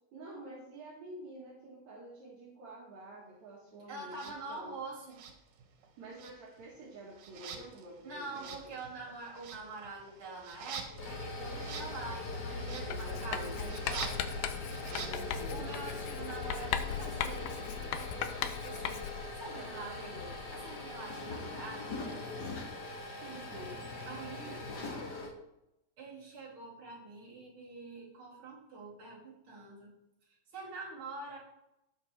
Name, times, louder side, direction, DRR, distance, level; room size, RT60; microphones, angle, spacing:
voice 1, 0.1-4.7 6.0-8.7 12.8-13.6 14.9-15.6 19.6-20.4 23.2-23.8 24.4-24.6, right 1 dB, 65° right, -5 dB, 2.8 m, -48 dB
voice 2, 3.9-5.2 8.0-14.2 15.5-19.1 19.4-20.2 20.5-22.2 24.1-24.6 26.0-29.9 30.2-31.4, right 3 dB, 45° right, -4 dB, 3.5 m, -45 dB
sound 1, 4.1-4.4 5.1-5.9 6.1-15.6, right 6 dB, 85° right, 2.8 m, -47 dB
sound 2, 10.8-25.3, left 3 dB, 45° left, 1.5 m, -41 dB
Writing, 12.9-19.3, left 9 dB, 85° left, 2.3 m, -38 dB
16.5 x 5.9 x 3.3 m, 0.87 s
omnidirectional pair, 3.6 m